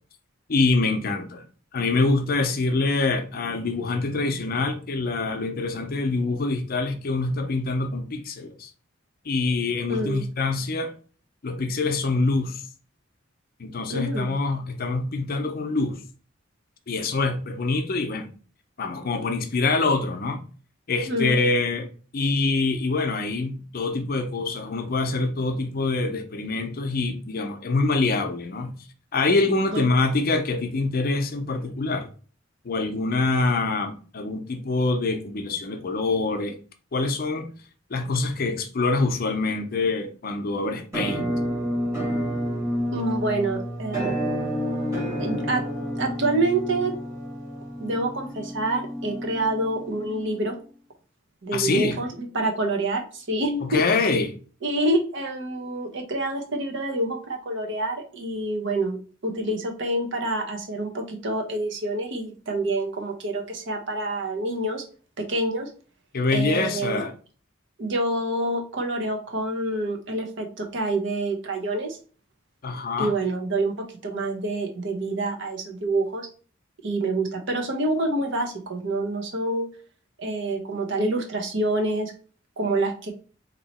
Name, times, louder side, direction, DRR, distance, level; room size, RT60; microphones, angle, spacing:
voice 1, 0.5-1.4 1.7-8.7 9.3-10.9 11.4-12.6 13.6-16.0 16.9-18.3 18.8-20.4 20.9-28.7 29.1-32.1 32.6-36.6 36.9-37.5 37.9-41.3 51.5-52.0 53.6-54.3 66.1-67.1 72.6-73.1, left 3 dB, 50° left, 0.6 m, -25 dB
voice 2, 9.9-10.2 13.9-14.3 21.1-21.4 29.7-29.8 42.9-44.2 45.2-45.6 45.9-46.9 47.8-50.5 51.4-53.8 54.6-64.8 65.2-65.7 66.3-67.0 67.8-72.0 73.0-73.7 74.0-76.3 76.8-79.7 80.2-82.1 82.6-83.1, right 2 dB, 65° right, 0.8 m, -27 dB
Musical instrument, 40.9-50.7, equal, 15° right, 1.3 m, -30 dB
3.0 x 2.7 x 4.1 m
head